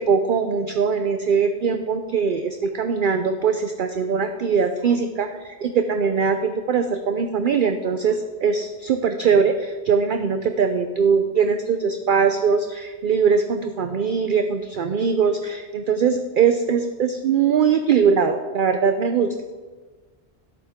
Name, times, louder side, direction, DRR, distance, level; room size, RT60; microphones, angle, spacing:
voice 1, 0.0-19.3, right 6 dB, 55° right, 7 dB, 0.7 m, -21 dB
16.5 x 8.4 x 3.6 m, 1.4 s
omnidirectional pair, 1.2 m